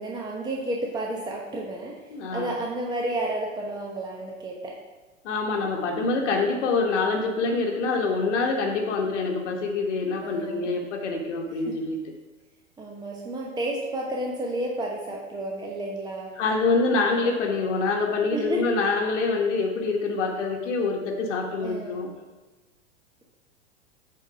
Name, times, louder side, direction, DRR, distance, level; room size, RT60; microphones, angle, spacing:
voice 1, 0.0-2.0 2.3-4.8 10.2-10.7 11.6-11.8 12.8-16.3 18.3-18.8 21.6-22.0, right 1 dB, 10° right, -1 dB, 0.9 m, -31 dB
voice 2, 2.1-2.6 5.2-12.0 16.4-22.1, left 3 dB, 60° left, 1 dB, 1.4 m, -25 dB
8.6 x 4.3 x 5.5 m, 1.2 s
figure-of-eight pair, 95°, 40 cm